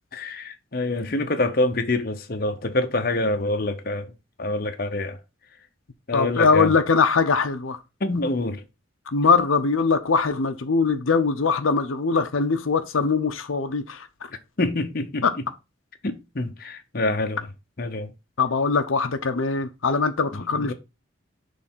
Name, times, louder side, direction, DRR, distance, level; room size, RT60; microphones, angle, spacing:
voice 1, 0.1-4.1 4.4-5.2 6.1-6.7 8.0-8.6 14.6-15.2 16.0-17.5 17.8-18.1 20.4-20.7, left 2 dB, 45° left, 0.8 m, -26 dB
voice 2, 6.1-7.8 9.1-14.1 15.2-15.3 18.4-20.7, left 4 dB, 85° left, 0.7 m, -22 dB
6.5 x 3.4 x 5.5 m
head